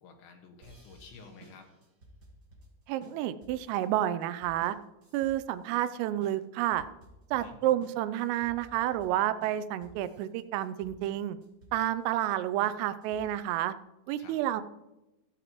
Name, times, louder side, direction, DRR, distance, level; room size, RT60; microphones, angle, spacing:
voice 1, 0.0-1.7 7.3-7.6 14.2-14.4, left 5 dB, 70° left, 3 dB, 3.7 m, -51 dB
sound 1, 0.6-13.5, right 1 dB, 65° right, 1.1 m, -55 dB
voice 2, 2.9-4.8 5.1-6.9 7.3-11.4 11.7-13.7 14.1-14.6, right 13 dB, 90° right, 14 dB, 3.3 m, -30 dB
27.0 x 9.1 x 3.1 m, 0.97 s
omnidirectional pair, 5.7 m